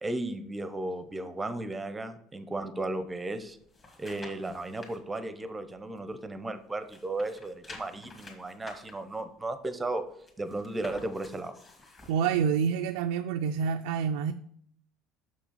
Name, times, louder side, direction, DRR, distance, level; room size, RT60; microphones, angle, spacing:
voice 1, 0.0-3.6 4.0-10.0 10.4-11.5, right 2 dB, 15° right, 10 dB, 0.7 m, -35 dB
sound 1, 3.4-5.0 5.4-6.6 6.8-12.4 12.8-12.9, left 3 dB, 25° left, 1.8 m, -51 dB
voice 2, 12.1-14.3, right 7 dB, 85° right, 6 dB, 0.4 m, -27 dB
6.3 x 6.0 x 4.0 m, 0.68 s
supercardioid pair, 120°, 0 cm